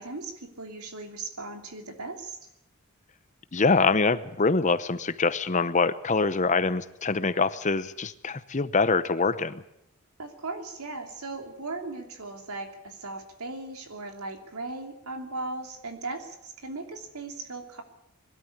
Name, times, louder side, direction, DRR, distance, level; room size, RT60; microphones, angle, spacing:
voice 1, 0.0-2.4 10.2-17.8, right 3 dB, 85° right, 5 dB, 3.1 m, -38 dB
voice 2, 3.5-9.6, left 4 dB, 35° left, 14 dB, 0.8 m, -24 dB
21.0 x 13.0 x 10.0 m, 0.81 s
head